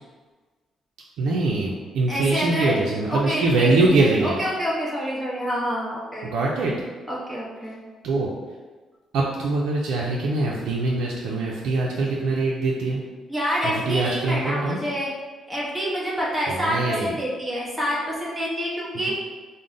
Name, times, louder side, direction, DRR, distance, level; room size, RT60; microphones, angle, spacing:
voice 1, 1.2-4.4 6.2-6.7 8.0-8.3 9.1-13.0 13.6-14.8 16.5-17.1 18.9-19.1, right 3 dB, 80° right, -3 dB, 0.4 m, -23 dB
voice 2, 2.1-2.8 3.1-3.7 4.0-6.3 7.1-7.8 13.3-15.1 15.5-19.1, equal, 5° right, -7 dB, 1.0 m, -27 dB
3.7 x 2.1 x 3.7 m, 1.4 s
cardioid pair, 90°, 0 cm